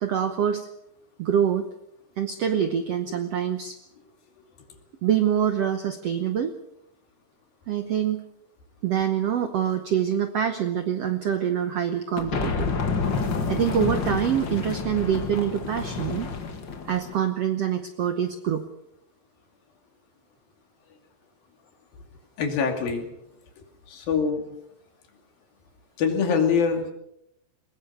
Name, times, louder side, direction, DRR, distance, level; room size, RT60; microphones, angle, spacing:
voice 1, 0.0-0.7 1.2-1.7 2.2-3.8 5.0-6.5 7.7-8.2 8.8-12.7 13.5-16.3 16.8-18.6, right 9 dB, 70° right, 8 dB, 1.5 m, -25 dB
sound 1, 12.2-17.2, left 5 dB, 40° left, 1.9 m, -29 dB
voice 2, 22.4-23.1 23.9-24.4 26.0-26.9, left 6 dB, 75° left, 4 dB, 4.3 m, -24 dB
21.5 x 21.0 x 6.8 m, 0.79 s
omnidirectional pair, 4.2 m